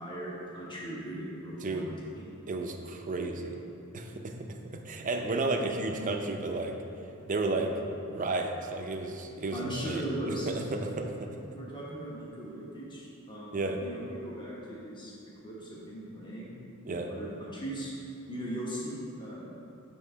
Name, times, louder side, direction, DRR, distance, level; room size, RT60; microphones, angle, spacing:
voice 1, 0.0-2.3 9.5-10.5 10.9-11.1 11.5-15.1 15.4-16.5 16.9-17.9 18.3-19.5, right 1 dB, 20° left, -6 dB, 1.1 m, -39 dB
voice 2, 2.5-3.6 3.9-4.3 4.7-6.8 7.3-7.7 8.1-11.3 13.5-13.8 16.9-17.1, right 2 dB, 40° right, 3 dB, 0.5 m, -32 dB
7.3 x 3.7 x 5.5 m, 2.7 s
head